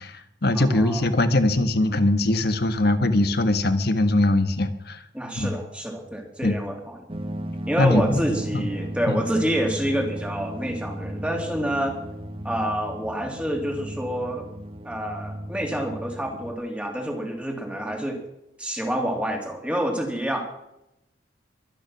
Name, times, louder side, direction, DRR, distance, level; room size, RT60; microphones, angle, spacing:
voice 1, 0.0-5.0 5.3-5.5 6.4-6.6 7.8-8.0 8.5-8.7 9.1-9.2, left 1 dB, 55° left, 9 dB, 1.4 m, -21 dB
voice 2, 0.5-1.0 5.1-7.0 7.7-12.0 12.4-14.5 14.8-18.2 18.6-20.4, equal, 5° right, 1 dB, 3.2 m, -28 dB
sound 1, 7.1-16.5, equal, 30° right, 1.2 m, -35 dB
23.5 x 10.0 x 6.1 m, 0.85 s
head